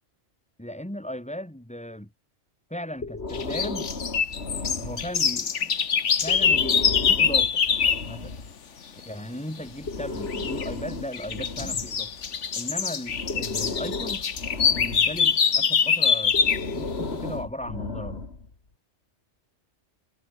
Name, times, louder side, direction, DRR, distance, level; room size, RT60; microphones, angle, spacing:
voice 1, 0.6-2.1 2.7-3.9 4.8-5.7 6.2-7.6 8.1-8.3 9.1-12.1 12.6-14.3 14.7-16.4 16.7-18.2, equal, 5° left, 2.4 m, -36 dB
Breathing, 3.0-5.4 6.2-8.5 9.6-12.5 13.1-15.3 16.2-18.5, left 3 dB, 60° left, 2.9 m, -34 dB
sound 1, 3.3-8.1 10.3-10.7 11.1-16.7, left 6 dB, 85° left, 1.7 m, -24 dB
omnidirectional pair, 1.2 m